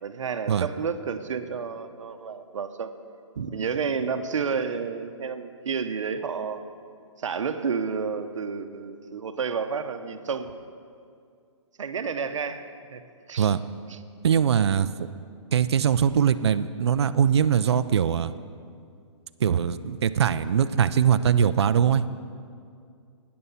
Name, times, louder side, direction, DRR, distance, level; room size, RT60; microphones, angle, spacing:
voice 1, 0.0-2.9 3.3-6.6 7.2-10.6 11.8-13.0 13.3-13.5 13.9-14.0, right 5 dB, 75° right, 9 dB, 0.9 m, -30 dB
voice 2, 14.2-15.1 15.5-18.3 19.4-22.0, right 8 dB, 55° right, 12 dB, 0.4 m, -22 dB
12.5 x 9.6 x 5.6 m, 2.3 s
hypercardioid pair, 180°, 16 cm